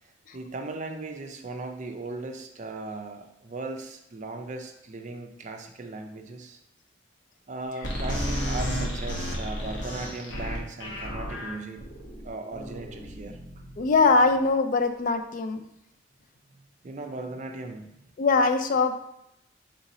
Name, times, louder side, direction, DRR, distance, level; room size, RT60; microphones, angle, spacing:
voice 1, 0.3-6.6 7.5-11.8 12.2-13.4 16.8-18.0, right 2 dB, 40° right, 4 dB, 0.5 m, -38 dB
sound 1, 7.8-14.3, equal, 75° left, 1.0 m, -32 dB
voice 2, 13.8-15.6 18.2-18.9, left 4 dB, 45° left, 8 dB, 0.3 m, -22 dB
3.7 x 2.7 x 4.1 m, 0.81 s
head